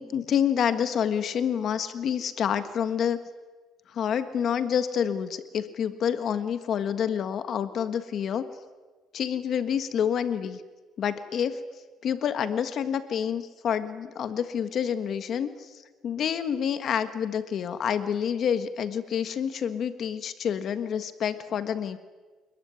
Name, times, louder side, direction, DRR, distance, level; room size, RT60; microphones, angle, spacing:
voice 1, 0.0-3.2 3.9-8.5 9.1-10.6 11.0-11.6 12.0-22.0, left 8 dB, 50° left, 10 dB, 1.5 m, -28 dB
28.0 x 21.5 x 9.9 m, 1.3 s
cardioid pair, 135°, 0 cm